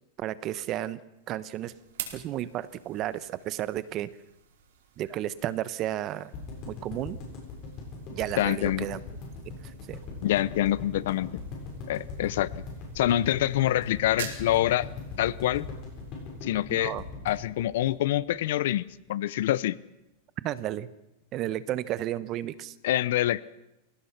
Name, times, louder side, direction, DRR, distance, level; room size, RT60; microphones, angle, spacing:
voice 1, 0.2-1.0 1.3-1.7 2.1-4.1 5.0-6.3 6.7-7.2 8.1-9.0 9.5-9.6 9.9-10.0 16.7-17.0 20.4-20.9 21.3-22.7, right 13 dB, 35° right, 16 dB, 1.0 m, -32 dB
sound 1, 1.1-18.1, right 8 dB, 85° right, 4.9 m, -48 dB
sound 2, 6.3-18.5 18.8-18.9 19.1-19.2, left 4 dB, 35° left, 7.8 m, -40 dB
voice 2, 8.4-8.9 10.2-11.3 11.9-12.5 12.9-14.9 15.2-15.7 16.4-16.9 17.2-19.8 22.8-23.4, left 13 dB, 70° left, 19 dB, 0.7 m, -26 dB
27.0 x 17.5 x 5.9 m, 0.93 s
supercardioid pair, 150°, 0 cm